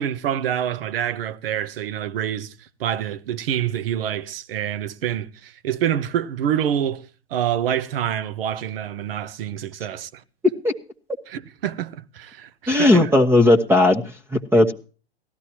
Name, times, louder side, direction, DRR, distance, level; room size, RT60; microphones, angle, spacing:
voice 1, 0.0-10.2 11.3-13.1, right 10 dB, 55° right, 1.1 m, -27 dB
voice 2, 12.7-14.0 14.3-14.7, left 1 dB, 5° right, 1.2 m, -16 dB
18.0 x 13.5 x 3.0 m
figure-of-eight pair, 110°, 33 cm